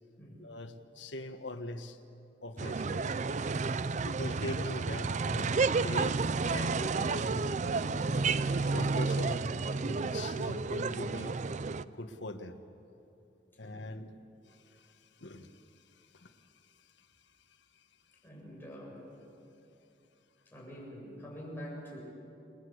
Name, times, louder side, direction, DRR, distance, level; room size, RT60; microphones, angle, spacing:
voice 1, 0.4-2.0 2.4-3.2 4.0-6.2 6.5-9.5 9.8-11.4 11.9-12.6 13.6-14.1 14.5-17.3 17.7-17.9 18.3-18.4, left 1 dB, 80° left, 7 dB, 1.5 m, -43 dB
sound 1, 2.6-11.8, right 4 dB, 40° right, 0.5 m, -31 dB
voice 2, 3.6-3.9 13.6-13.9 18.2-19.0 20.5-22.0, equal, 10° left, -4 dB, 7.5 m, -46 dB
29.5 x 21.5 x 8.1 m, 2.8 s
head